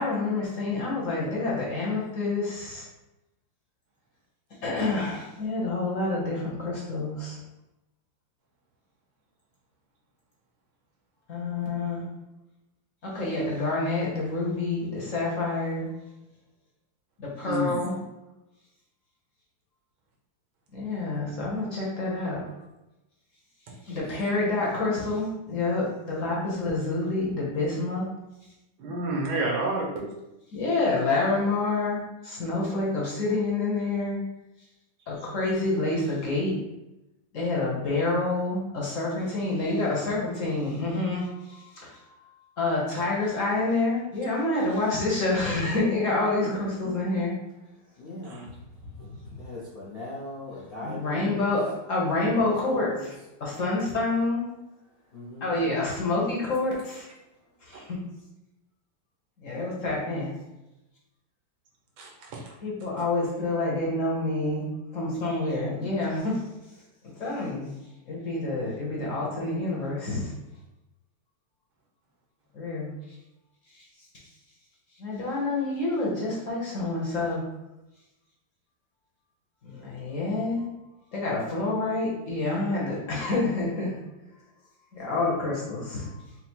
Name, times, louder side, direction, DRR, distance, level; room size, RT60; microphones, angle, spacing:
voice 1, 0.0-2.9 4.6-7.4 11.3-12.0 13.0-15.9 17.2-17.9 20.7-22.4 23.8-28.0 30.5-34.2 35.1-36.5 37.3-42.1 42.6-47.3 49.0-49.1 50.8-53.1 53.4-54.4 55.4-57.1 57.6-58.0 59.4-60.3 62.6-64.7 64.9-66.4 67.2-67.7 68.1-70.3 72.5-72.9 73.7-73.8 75.0-77.4 79.6-80.7 81.1-84.0 84.9-86.1, left 2 dB, 50° left, -4 dB, 1.1 m, -28 dB
voice 2, 17.4-17.8 28.8-30.1 48.2-48.5 62.0-62.5, right 1 dB, 80° right, -1 dB, 1.6 m, -30 dB
voice 3, 46.4-47.0 48.0-48.5 49.3-51.5 52.3-53.0 55.1-55.5, left 1 dB, 75° left, -6 dB, 0.5 m, -38 dB
4.3 x 2.0 x 4.4 m, 0.94 s
omnidirectional pair, 2.2 m